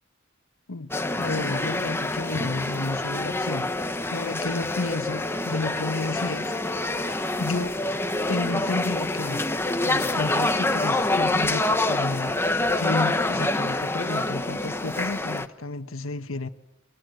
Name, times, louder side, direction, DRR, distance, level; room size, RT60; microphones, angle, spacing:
voice 1, 0.7-6.5 7.4-7.8 8.3-9.5 9.8-12.4 12.7-16.5, left 3 dB, 85° left, 9 dB, 1.4 m, -31 dB
sound 1, 0.9-15.5, left 2 dB, 10° left, 1.0 m, -26 dB
30.0 x 23.0 x 7.9 m, 0.87 s
head